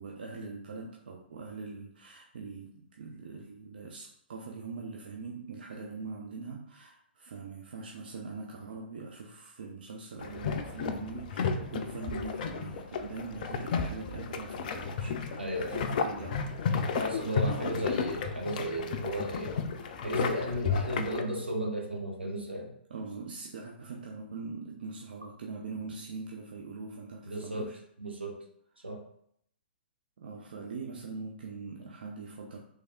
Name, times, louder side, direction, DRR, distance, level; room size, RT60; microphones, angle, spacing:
voice 1, 0.0-16.5 17.3-17.8 22.9-27.8 30.2-32.6, right 4 dB, 60° right, -1 dB, 0.5 m, -42 dB
sound 1, 10.2-21.2, left 5 dB, 50° left, 0.4 m, -33 dB
voice 2, 15.4-15.8 16.9-19.5 20.0-22.7 27.2-27.7 28.0-28.4 28.8-29.0, equal, 85° right, -1 dB, 1.0 m, -34 dB
3.3 x 3.3 x 2.3 m, 0.69 s
figure-of-eight pair, 115°, 6 cm